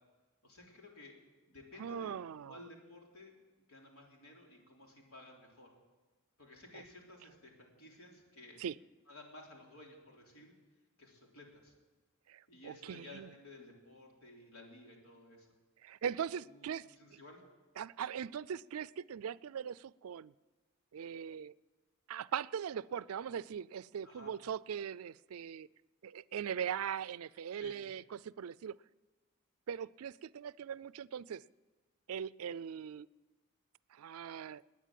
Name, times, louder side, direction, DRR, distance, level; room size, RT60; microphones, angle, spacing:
voice 1, 0.4-1.2 1.5-2.1 2.4-3.3 3.7-5.7 6.4-8.6 9.1-10.5 11.0-11.7 12.5-15.5 16.4-17.5 24.0-24.3 27.5-27.8, left 2 dB, 90° left, -1 dB, 3.8 m, -55 dB
voice 2, 1.8-2.6 6.7-6.8 8.6-8.8 12.3-13.3 15.8-16.8 17.1-17.2 17.8-20.3 20.9-21.5 22.1-25.7 26.0-28.8 29.7-31.4 32.1-33.1 33.9-34.6, right 8 dB, 90° right, 20 dB, 0.4 m, -40 dB
19.5 x 9.4 x 7.6 m, 1.3 s
head